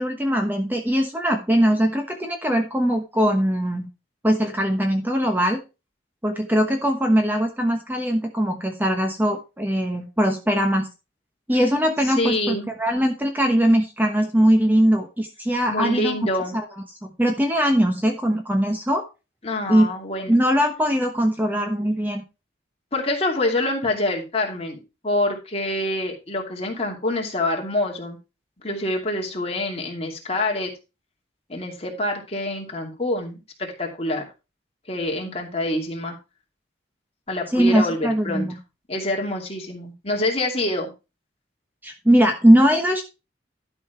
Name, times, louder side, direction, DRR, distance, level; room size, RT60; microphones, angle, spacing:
voice 1, 0.0-3.9 4.2-5.6 6.2-10.9 11.5-16.2 17.2-19.1 19.7-19.9 20.3-22.2 37.5-38.6 41.8-43.0, equal, 10° right, 4 dB, 1.1 m, -20 dB
voice 2, 12.0-12.7 15.7-16.6 19.4-20.4 22.9-28.2 28.6-30.7 31.5-34.2 34.9-36.2 37.3-38.5 38.9-40.9, left 1 dB, 35° left, 1 dB, 2.6 m, -26 dB
12.0 x 5.5 x 4.4 m, 0.28 s
head